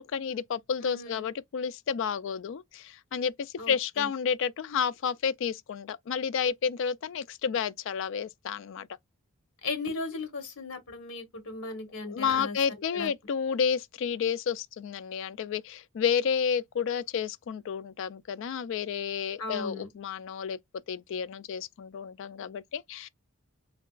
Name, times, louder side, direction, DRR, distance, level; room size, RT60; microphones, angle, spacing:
voice 1, 0.0-8.9 12.1-20.6 20.9-23.1, left 7 dB, 60° left, 0.3 m, -31 dB
voice 2, 0.8-1.3 3.6-4.1 9.6-12.6 12.9-13.1 19.4-19.9, left 3 dB, 80° left, 1.1 m, -37 dB
3.4 x 2.9 x 2.3 m
head